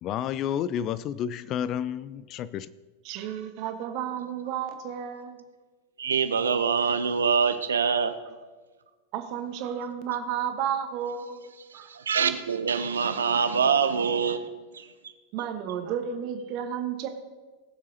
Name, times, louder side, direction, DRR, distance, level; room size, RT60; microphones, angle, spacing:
voice 1, 0.0-2.7, left 9 dB, 35° left, 0.3 m, -30 dB
voice 2, 3.0-5.4 9.1-11.4 11.7-11.9 15.3-17.1, right 8 dB, 40° right, 1.2 m, -32 dB
voice 3, 6.0-8.2 11.7-14.4 14.7-15.1, right 6 dB, 70° right, 0.6 m, -25 dB
19.5 x 7.1 x 2.8 m
figure-of-eight pair, 90°, 0 cm